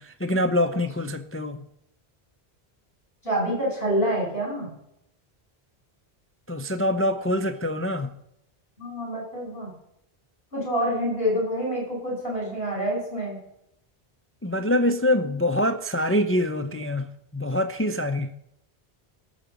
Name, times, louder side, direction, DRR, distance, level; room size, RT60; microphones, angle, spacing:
voice 1, 0.0-1.6 6.5-8.1 14.4-18.3, left 1 dB, 20° left, 0.4 m, -25 dB
voice 2, 3.2-4.7 8.8-9.7 10.5-13.4, equal, 65° left, 5.9 m, -27 dB
18.0 x 6.9 x 5.2 m
omnidirectional pair, 1.1 m